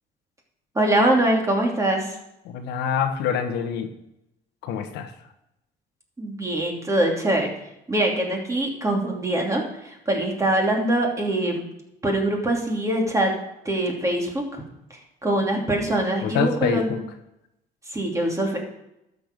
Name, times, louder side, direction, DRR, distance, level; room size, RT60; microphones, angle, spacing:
voice 1, 0.7-2.2 6.2-7.5 7.9-11.7 12.0-13.3 13.6-14.4 15.2-17.0 17.9-18.6, right 1 dB, 20° right, 0 dB, 2.8 m, -23 dB
voice 2, 2.4-3.9 4.6-5.1 16.2-17.0, left 8 dB, 90° left, 7 dB, 1.2 m, -26 dB
12.0 x 6.9 x 5.2 m, 0.85 s
cardioid pair, 110°, 17 cm